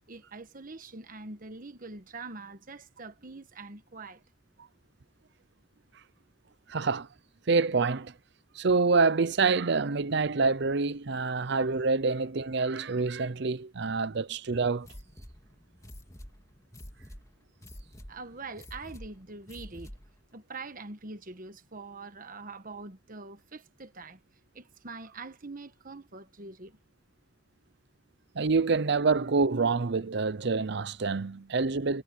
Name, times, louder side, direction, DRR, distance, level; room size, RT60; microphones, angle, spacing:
voice 1, 0.1-4.2 18.1-19.9 20.3-24.2 24.5-26.8, right 3 dB, 45° right, 1.3 m, -44 dB
voice 2, 6.7-7.1 7.5-8.1 8.6-14.9 28.4-32.0, right 4 dB, 60° right, 0.7 m, -26 dB
sound 1, 14.8-20.2, equal, 15° left, 2.9 m, -48 dB
head